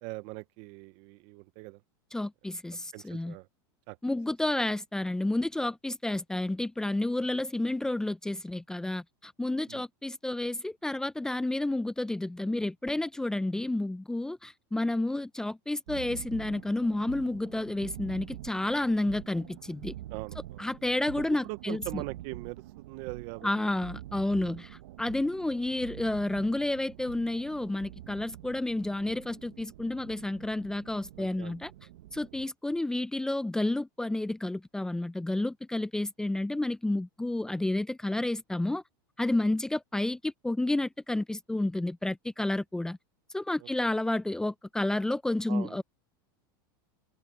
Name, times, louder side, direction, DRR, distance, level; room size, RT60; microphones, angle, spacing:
voice 1, 0.0-1.8 2.9-3.5 3.9-4.0 9.7-9.8 20.1-20.7 21.2-23.7 24.3-24.7 31.2-31.6 43.6-43.9 45.5-45.8, right 23 dB, 55° right, 1.1 m, -42 dB
voice 2, 2.1-3.3 4.0-19.9 20.6-22.0 23.4-31.7 32.1-38.8 39.2-43.0 43.3-45.8, left 2 dB, 5° left, 0.7 m, -30 dB
sound 1, 15.9-32.5, right 14 dB, 80° right, 1.3 m, -46 dB
supercardioid pair, 140°, 12 cm